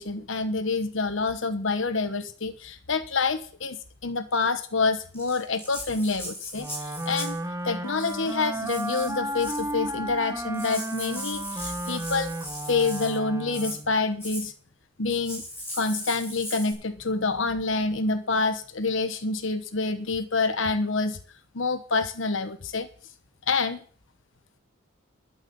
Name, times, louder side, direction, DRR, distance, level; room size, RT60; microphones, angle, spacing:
voice 1, 0.0-7.4 7.6-12.3 12.7-14.5 15.0-15.4 15.7-21.2 21.5-22.9 23.5-23.8, left 3 dB, 60° left, 11 dB, 1.0 m, -27 dB
Rattle (instrument), 5.1-7.4 7.9-8.3 8.6-9.7 10.2-10.3 10.5-13.2 13.5-13.8 14.2-14.5 15.1-16.7, equal, 10° left, 6.9 m, -38 dB
Wind instrument woodwind instrument, 6.6-14.0, right 1 dB, 15° right, 1.2 m, -33 dB
12.5 x 8.1 x 6.9 m, 0.43 s
head